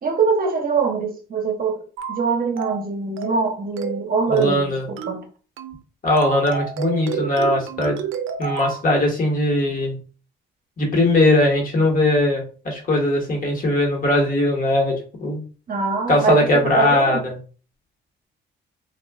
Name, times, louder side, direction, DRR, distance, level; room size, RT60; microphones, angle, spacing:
voice 1, 0.0-5.2 15.7-17.2, right 5 dB, 45° right, 0.8 m, -23 dB
sound 1, 2.0-2.2 2.6-2.8 3.2-3.5 3.8-4.0 4.4-4.6 5.0-5.2 5.6-5.8 6.2-8.8, right 8 dB, 80° right, 0.4 m, -29 dB
voice 2, 4.3-4.9 6.0-7.9 8.4-10.0 10.8-14.9 15.2-15.4 16.1-17.4, left 1 dB, 45° left, 1.2 m, -19 dB
2.3 x 2.2 x 3.4 m
cardioid pair, 90°, 20 cm